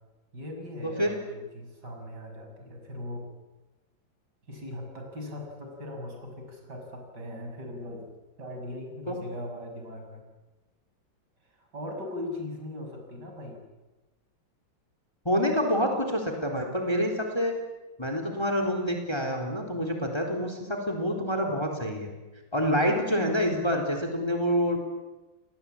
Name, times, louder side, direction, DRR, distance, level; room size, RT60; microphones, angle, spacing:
voice 1, 0.3-3.3 4.5-8.1 8.4-10.3 11.6-13.6, left 1 dB, 55° right, 2 dB, 6.9 m, -39 dB
voice 2, 15.3-17.5 18.0-22.1 22.5-24.8, equal, 10° left, 4 dB, 4.0 m, -27 dB
29.5 x 21.5 x 8.7 m, 1.1 s
omnidirectional pair, 2.2 m